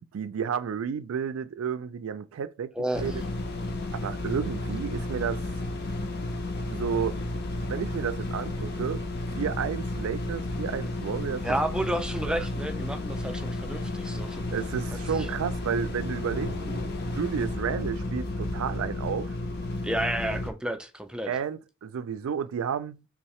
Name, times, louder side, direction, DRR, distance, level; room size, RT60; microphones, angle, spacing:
voice 1, 0.1-2.7 3.0-3.2 3.9-5.4 6.7-7.2 7.7-9.0 9.3-11.5 12.3-12.5 14.5-16.5 17.1-19.3 21.3-23.0, right 7 dB, 85° right, 0.3 m, -31 dB
voice 2, 2.8-3.2 11.4-14.4 15.1-15.3 19.8-21.4, right 1 dB, 5° right, 0.3 m, -31 dB
sound 1, 2.9-20.5, left 2 dB, 50° left, 0.5 m, -32 dB
Thunder, 13.8-18.6, left 1 dB, 75° left, 1.1 m, -44 dB
3.6 x 2.7 x 3.0 m
head